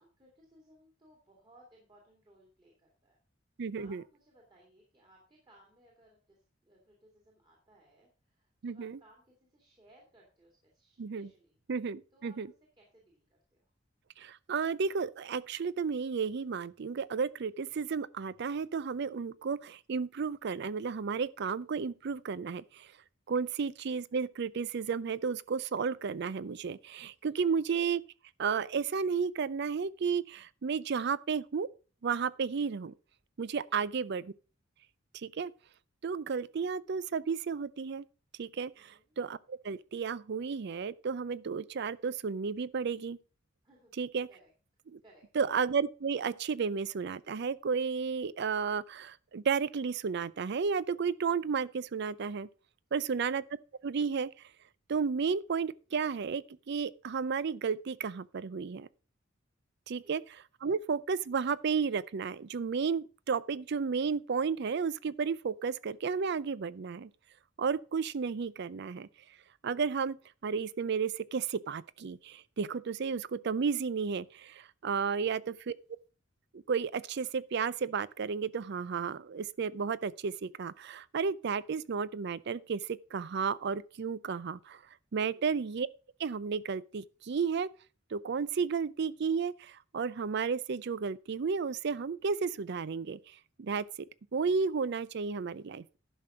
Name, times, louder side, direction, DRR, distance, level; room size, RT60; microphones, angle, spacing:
voice 1, 0.0-3.2 3.7-11.6 12.1-12.4 12.8-13.7 23.3-23.5 27.2-27.6 33.7-33.8 38.7-39.1 43.6-43.9 44.3-44.5 45.0-45.2 60.0-60.2 85.3-85.5, right 1 dB, 25° right, 2.3 m, -63 dB
voice 2, 3.6-4.0 8.6-9.0 11.0-11.3 11.7-12.5 14.2-22.9 23.3-28.0 28.4-31.7 32.0-32.9 33.4-34.3 35.2-35.5 36.0-38.0 38.4-43.2 44.0-44.3 44.9-45.0 45.4-52.5 52.9-53.4 53.8-54.3 54.9-58.9 59.9-60.2 60.6-67.1 67.6-69.1 69.6-70.2 70.4-75.7 76.7-84.8 85.1-85.9 86.2-87.7 88.1-93.2 93.6-94.1 94.3-95.8, right 5 dB, 60° right, 0.5 m, -33 dB
11.0 x 6.0 x 4.9 m
head